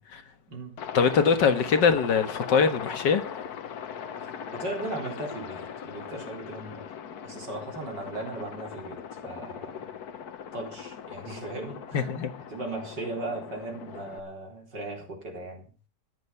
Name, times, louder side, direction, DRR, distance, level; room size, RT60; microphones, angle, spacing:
Aircraft, 0.8-14.2, left 8 dB, 65° left, 1.5 m, -39 dB
voice 1, 0.9-3.2 11.9-12.3, left 6 dB, 85° left, 2.1 m, -22 dB
voice 2, 4.5-6.8 7.2-9.9 10.5-12.2 12.5-15.9, right 2 dB, 90° right, 4.6 m, -37 dB
13.5 x 10.5 x 5.7 m
omnidirectional pair, 1.8 m